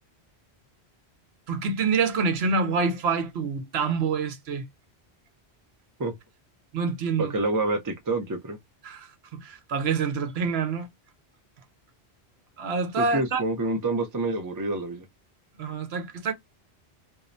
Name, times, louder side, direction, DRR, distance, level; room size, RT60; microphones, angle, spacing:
voice 1, 1.5-4.6 6.7-7.3 8.8-10.9 12.6-13.4 15.6-16.3, right 5 dB, 75° right, 0.9 m, -27 dB
voice 2, 7.2-8.6 13.0-15.0, right 2 dB, 30° right, 0.4 m, -27 dB
2.6 x 2.0 x 2.4 m
omnidirectional pair, 1.1 m